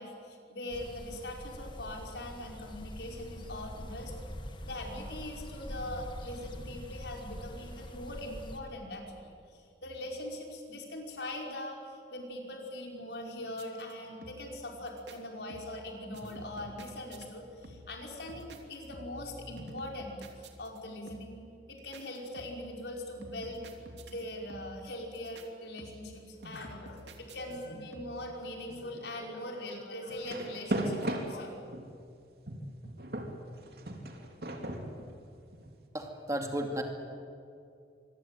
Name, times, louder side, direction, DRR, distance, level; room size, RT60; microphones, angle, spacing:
voice 1, 0.0-4.1 4.6-21.4 21.7-23.6 24.1-31.6, left 1 dB, 75° left, 1 dB, 5.4 m, -41 dB
sound 1, 0.7-8.6, equal, 25° left, 1.9 m, -44 dB
sound 2, 13.5-13.9 14.2-14.6 14.9-15.2 15.5-17.3 17.6-18.0 18.3-19.3 19.6-20.8 21.1-21.5 21.9-22.7 23.2-24.2 24.5-24.9 25.1-25.5 25.8-26.2 26.4-27.6 27.9-28.3, right 1 dB, 85° right, 3.0 m, -50 dB
sound 3, 30.1-31.9 32.5-35.7, right 1 dB, 60° right, 3.1 m, -36 dB
voice 2, 35.9-36.8, right 1 dB, 20° right, 3 dB, 2.5 m, -33 dB
26.0 x 22.0 x 9.3 m, 2.4 s
head